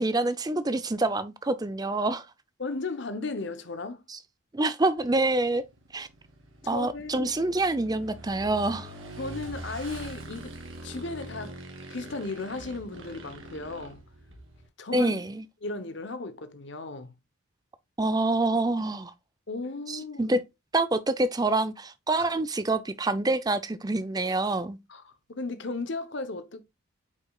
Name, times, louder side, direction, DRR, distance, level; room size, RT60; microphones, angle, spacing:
voice 1, 0.0-2.3 4.1-4.2 4.5-5.6 5.9-6.1 6.7-8.9 14.9-15.4 18.0-19.1 19.9-20.4 20.7-24.8, right 2 dB, 20° right, 0.5 m, -26 dB
voice 2, 2.6-4.0 6.6-7.3 9.2-11.6 11.9-14.0 14.8-15.2 15.6-17.1 19.5-20.4 22.2-22.3 24.9-26.6, left 3 dB, 60° left, 0.9 m, -35 dB
Motorcycle / Engine, 5.0-14.7, right 1 dB, 80° right, 2.6 m, -43 dB
8.4 x 5.1 x 2.4 m
head